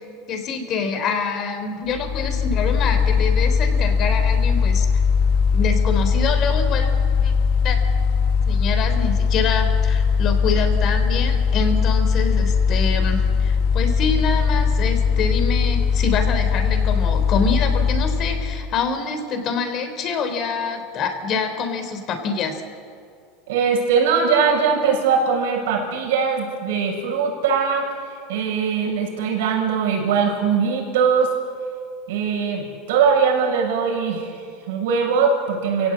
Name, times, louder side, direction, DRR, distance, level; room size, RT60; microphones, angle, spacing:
voice 1, 0.3-4.9 5.5-6.9 7.2-7.3 7.6-7.8 8.4-22.6, left 4 dB, 40° left, 7 dB, 3.5 m, -26 dB
Mechanical fan, 1.9-18.7, left 6 dB, 65° left, 1.5 m, -20 dB
voice 2, 23.5-31.3 32.1-35.9, right 6 dB, 80° right, 0 dB, 7.2 m, -21 dB
27.5 x 16.5 x 8.6 m, 2.2 s
supercardioid pair, 140°, 0 cm